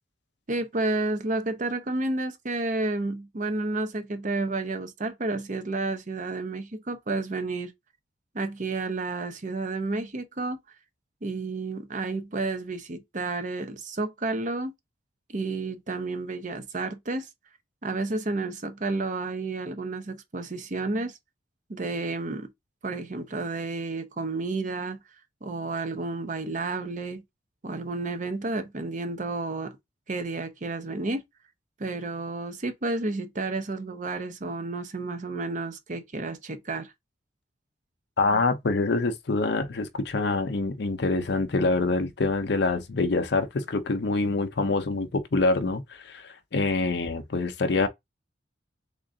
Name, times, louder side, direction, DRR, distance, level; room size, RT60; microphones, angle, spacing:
voice 1, 0.5-7.7 8.3-10.6 11.2-14.7 15.3-17.3 17.8-21.2 21.7-22.5 22.8-25.0 25.4-27.2 27.6-29.7 30.1-31.2 31.8-36.9, right 3 dB, 40° right, 0.6 m, -31 dB
voice 2, 38.2-47.9, left 3 dB, 60° left, 0.6 m, -25 dB
3.6 x 2.5 x 3.7 m
head